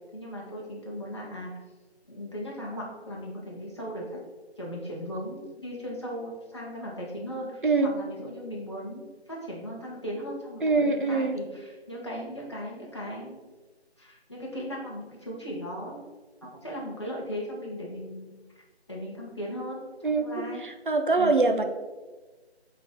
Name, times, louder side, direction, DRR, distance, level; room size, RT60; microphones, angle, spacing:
voice 1, 0.1-1.5 2.1-4.2 4.6-13.4 14.0-16.1 16.4-18.4 18.9-20.6 21.2-21.5, equal, 25° left, -5 dB, 1.0 m, -37 dB
voice 2, 10.6-11.4 20.0-20.3 20.6-21.6, right 3 dB, 50° right, 7 dB, 0.6 m, -23 dB
7.4 x 3.8 x 3.6 m, 1.3 s
figure-of-eight pair, 175°, 33 cm